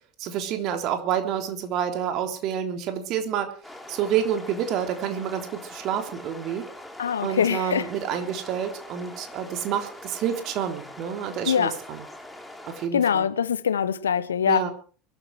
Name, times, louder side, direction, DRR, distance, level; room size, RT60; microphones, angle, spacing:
voice 1, 0.2-3.5 3.9-6.7 7.2-12.0 12.7-13.3 14.4-14.7, right 9 dB, 50° right, 3.4 m, -28 dB
sound 1, 3.6-12.9, left 1 dB, 5° left, 3.8 m, -43 dB
voice 2, 7.0-7.8 11.5-11.7 12.9-14.6, left 8 dB, 80° left, 0.9 m, -23 dB
23.0 x 12.5 x 4.7 m
figure-of-eight pair, 75°, 0 cm